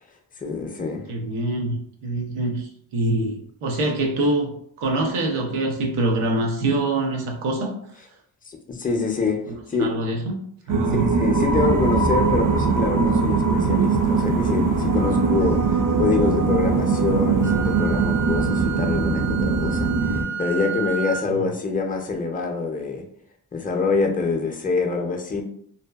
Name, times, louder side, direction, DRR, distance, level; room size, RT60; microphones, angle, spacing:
voice 1, 0.4-1.1 8.5-9.4 9.7-9.9 10.9-23.1 23.5-25.4, left 4 dB, 20° left, 3 dB, 0.4 m, -25 dB
voice 2, 1.1-7.7 9.8-10.3 10.7-11.1, right 2 dB, 85° right, 2 dB, 0.7 m, -25 dB
sound 1, 10.7-20.2, right 4 dB, 40° right, 0.5 m, -21 dB
Wind instrument woodwind instrument, 17.4-21.3, right 8 dB, 60° right, 0.9 m, -31 dB
2.7 x 2.2 x 2.3 m, 0.65 s
cardioid pair, 50°, 48 cm